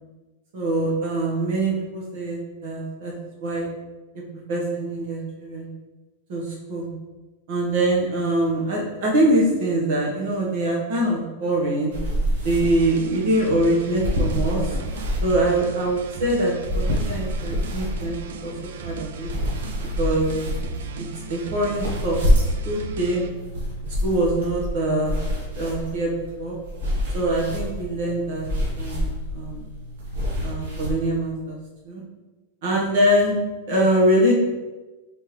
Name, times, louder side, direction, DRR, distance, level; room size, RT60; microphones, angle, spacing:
voice 1, 0.5-3.1 3.4-3.7 4.1-4.2 4.5-5.7 6.3-6.9 7.5-11.9 12.4-14.7 15.2-18.5 18.8-19.3 20.0-20.7 21.0-22.2 22.6-23.3 24.0-25.1 25.5-26.1 26.4-26.6 27.1-28.5 28.8-29.7 30.4-31.6 31.8-32.0 32.6-33.4 33.7-34.3, right 1 dB, 45° right, -2 dB, 1.2 m, -23 dB
sound 1, 11.9-30.9, equal, 85° right, 1.3 m, -28 dB
sound 2, 12.6-23.3, right 4 dB, 65° right, 0.4 m, -37 dB
4.3 x 3.7 x 3.2 m, 1.2 s
supercardioid pair, 180°, 0 cm